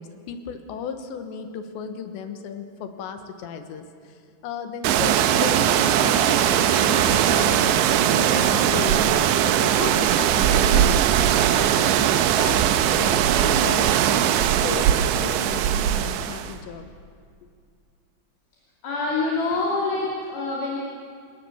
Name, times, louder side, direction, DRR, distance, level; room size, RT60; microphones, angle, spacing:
voice 1, 0.0-9.1 9.5-12.6 12.9-14.3 14.5-16.9, left 7 dB, 80° left, 7 dB, 3.6 m, -34 dB
sound 1, 4.8-16.5, right 10 dB, 90° right, 3.1 m, -20 dB
sound 2, 5.5-14.3 14.7-15.4 15.7-16.6, right 3 dB, 65° right, 4.7 m, -36 dB
voice 2, 18.8-20.8, left 3 dB, 60° left, -4 dB, 4.4 m, -26 dB
27.0 x 18.5 x 7.3 m, 2.1 s
omnidirectional pair, 5.1 m